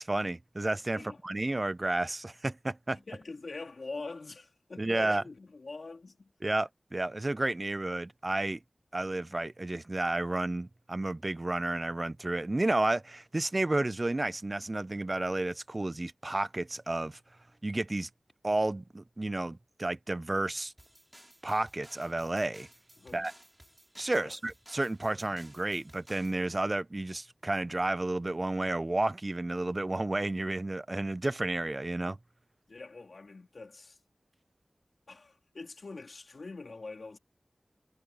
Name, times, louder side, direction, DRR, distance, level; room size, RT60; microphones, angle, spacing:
voice 1, 0.0-3.0 4.8-5.2 6.4-8.6 8.9-17.2 17.6-18.1 18.4-20.7 21.4-22.7 23.1-23.3 24.0-32.2, right 2 dB, 35° right, 0.5 m, -31 dB
voice 2, 2.9-6.3 23.0-23.3 24.2-24.4 32.7-34.0 35.1-37.2, left 3 dB, 70° left, 3.1 m, -44 dB
sound 1, 20.8-26.4, right 1 dB, 15° right, 5.0 m, -57 dB
wide cardioid pair, 55°, 0 cm